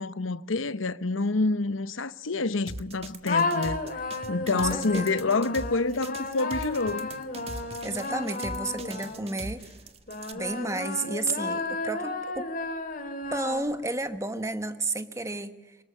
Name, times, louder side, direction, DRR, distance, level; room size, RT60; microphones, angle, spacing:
voice 1, 0.0-3.8 4.3-7.1, left 3 dB, 85° left, 0.9 m, -27 dB
sound 1, 2.7-10.3, right 2 dB, 30° right, 1.5 m, -40 dB
sound 2, 3.2-9.5 10.1-14.0, left 3 dB, 45° left, 2.4 m, -33 dB
voice 2, 4.5-5.1 7.8-9.6 10.3-12.5 13.3-15.8, right 2 dB, 15° right, 1.3 m, -32 dB
25.0 x 20.5 x 10.0 m
head